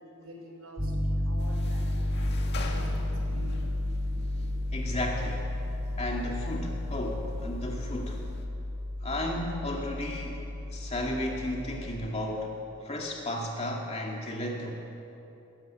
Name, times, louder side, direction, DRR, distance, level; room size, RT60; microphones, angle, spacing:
voice 1, 0.1-1.9 2.2-3.6 4.2-4.3, right 1 dB, 70° right, -4 dB, 6.0 m, -46 dB
Piano, 0.8-12.1, left 1 dB, 30° right, 4.5 m, -32 dB
sound 1, 1.4-8.5, left 1 dB, 50° left, 2.0 m, -44 dB
voice 2, 4.7-5.4 6.0-8.2 9.0-10.4 10.7-12.5 12.8-14.7, left 1 dB, 30° left, 0 dB, 2.3 m, -33 dB
22.0 x 15.5 x 9.1 m, 2.9 s
head